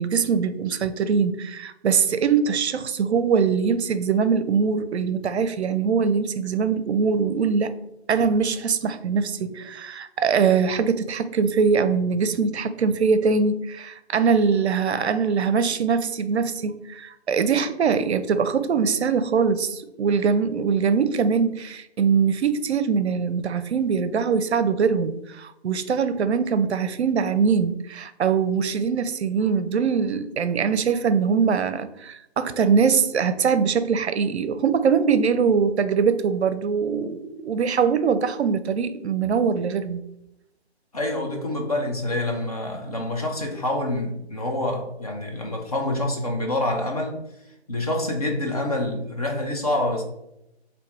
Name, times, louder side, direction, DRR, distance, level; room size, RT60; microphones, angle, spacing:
voice 1, 0.0-7.7 8.1-40.0, right 6 dB, 75° right, 0.5 m, -22 dB
voice 2, 40.9-47.2 47.7-50.0, left 1 dB, 35° left, 0.6 m, -26 dB
3.5 x 2.7 x 4.1 m
figure-of-eight pair, 160°, 33 cm